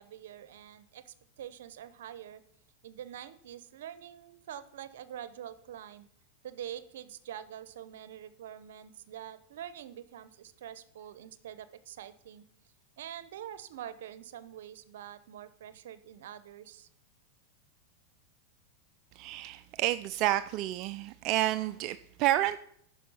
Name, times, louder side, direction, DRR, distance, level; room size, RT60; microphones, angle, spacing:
voice 1, 0.0-2.4 2.8-6.1 6.4-12.4 13.0-16.9, right 10 dB, 80° right, 15 dB, 0.7 m, -45 dB
voice 2, 19.1-22.6, right 14 dB, 50° right, 12 dB, 0.4 m, -30 dB
10.0 x 6.0 x 5.6 m, 0.68 s
hypercardioid pair, 120°, 0 cm